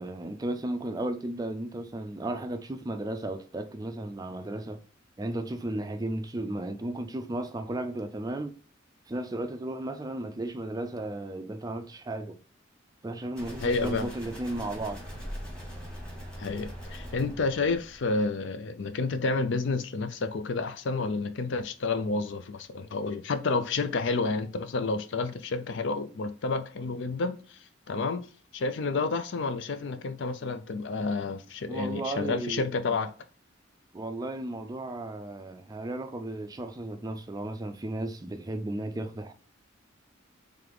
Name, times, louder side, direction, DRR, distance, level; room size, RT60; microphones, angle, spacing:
voice 1, 0.0-4.8 5.2-8.6 9.1-12.4 13.0-15.0 31.7-32.7 33.9-39.3, right 1 dB, 20° right, 0.4 m, -34 dB
sound 1, 13.4-18.3, equal, 5° left, 1.2 m, -41 dB
voice 2, 13.6-14.1 16.4-27.6 27.9-28.3 28.5-33.1, left 3 dB, 60° left, 0.4 m, -30 dB
3.3 x 3.2 x 3.8 m
head